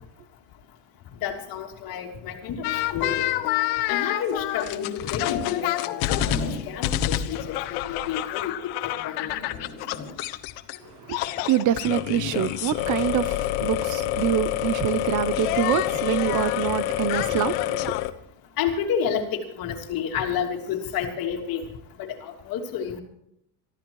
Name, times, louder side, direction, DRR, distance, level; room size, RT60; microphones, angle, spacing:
voice 1, 1.2-2.6 2.9-3.3 3.9-6.3 6.7-7.6 7.9-8.5 9.0-9.3 18.6-21.6 22.0-23.0, left 7 dB, 50° left, 3.1 m, -30 dB
sound 1, 2.6-10.8 11.1-18.1, left 13 dB, 90° left, 1.3 m, -27 dB
Zipper (clothing), 5.9-6.7 8.8-10.2 12.1-12.3, left 3 dB, 30° left, 7.1 m, -37 dB
voice 2, 11.5-17.9, right 11 dB, 45° right, 0.6 m, -25 dB
24.0 x 14.5 x 3.1 m
cardioid pair, 155°, 44 cm